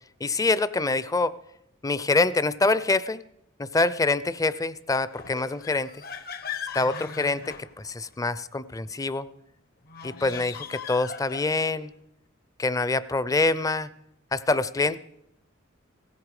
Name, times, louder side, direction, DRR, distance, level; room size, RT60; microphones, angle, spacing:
voice 1, 0.2-1.3 1.8-3.2 3.6-5.9 6.7-7.5 7.8-9.3 10.0-11.9 12.6-13.9 14.3-15.0, left 3 dB, 15° left, 17 dB, 0.5 m, -25 dB
sound 1, 5.1-8.2 9.8-11.9, left 7 dB, 45° left, 0.8 m, -39 dB
17.0 x 15.0 x 4.8 m, 0.78 s
head